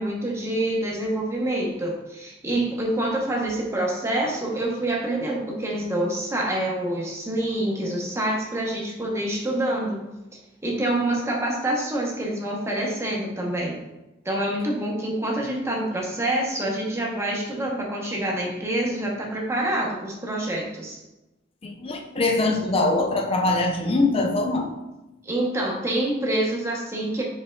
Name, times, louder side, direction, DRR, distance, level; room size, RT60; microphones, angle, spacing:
voice 1, 0.0-10.0 10.6-13.8 14.2-21.0 25.2-27.2, right 1 dB, 15° right, -2 dB, 0.8 m, -26 dB
voice 2, 21.6-24.7, left 2 dB, 30° left, 2 dB, 0.5 m, -23 dB
5.4 x 4.1 x 2.3 m, 0.99 s
head